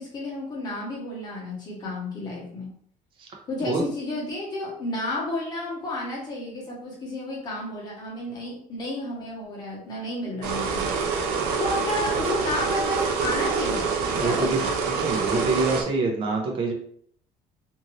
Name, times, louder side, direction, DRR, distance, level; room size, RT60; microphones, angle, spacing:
voice 1, 0.0-2.7 3.5-10.8 11.6-13.9 14.2-14.7, left 1 dB, 25° left, -3 dB, 1.0 m, -31 dB
sound 1, 10.4-15.8, right 5 dB, 85° right, 0.5 m, -26 dB
voice 2, 14.1-16.7, right 3 dB, 35° right, 1 dB, 0.6 m, -26 dB
2.6 x 2.6 x 2.9 m, 0.62 s
cardioid pair, 180°, 15 cm